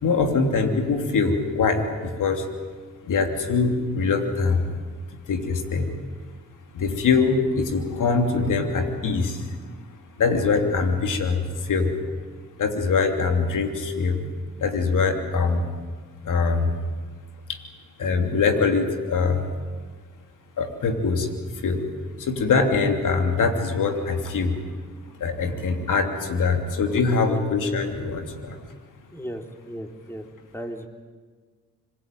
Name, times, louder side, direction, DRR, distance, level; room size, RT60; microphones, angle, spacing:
voice 1, 0.0-2.5 3.0-4.7 5.3-5.9 6.7-9.7 10.2-11.9 12.6-14.2 14.6-15.6 16.2-16.8 17.5-17.6 18.0-19.5 20.6-21.3 21.6-21.8 22.2-24.6 25.2-28.6, left 4 dB, 80° left, 5 dB, 3.0 m, -23 dB
voice 2, 29.1-30.2 30.5-30.9, equal, 10° left, 4 dB, 3.8 m, -35 dB
26.0 x 21.5 x 9.2 m, 1.5 s
supercardioid pair, 45°, 31 cm